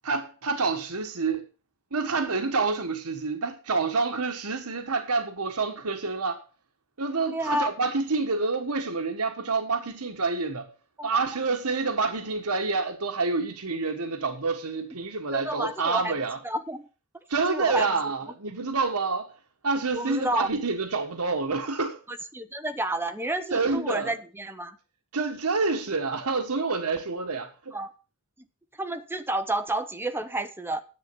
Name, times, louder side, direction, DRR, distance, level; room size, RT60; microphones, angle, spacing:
voice 1, 0.0-1.4 1.9-6.4 7.0-10.7 11.0-16.4 17.3-19.3 19.6-22.0 23.5-24.1 25.1-27.7, right 4 dB, 85° right, 1.4 m, -28 dB
voice 2, 7.3-7.7 11.0-11.1 15.3-16.1 16.4-16.9 17.5-17.9 18.3-18.4 19.9-20.5 22.1-24.8 27.7-27.9 28.8-30.8, right 1 dB, 10° right, 1.0 m, -30 dB
10.5 x 7.8 x 6.9 m
head